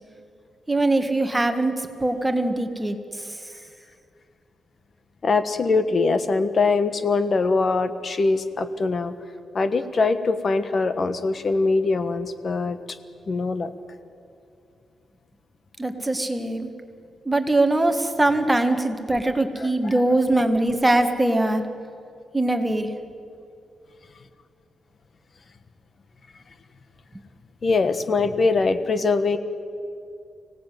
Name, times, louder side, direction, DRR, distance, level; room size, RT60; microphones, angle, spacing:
voice 1, 0.7-1.7 2.0-3.0 15.8-16.7 17.3-21.6 22.3-22.9, right 2 dB, 10° right, 6 dB, 1.7 m, -22 dB
voice 2, 5.2-9.1 9.5-12.8 13.3-13.7 19.6-20.0 27.6-29.4, left 3 dB, 45° left, 11 dB, 1.4 m, -22 dB
24.5 x 17.5 x 9.3 m, 2.5 s
wide cardioid pair, 120°, 0 cm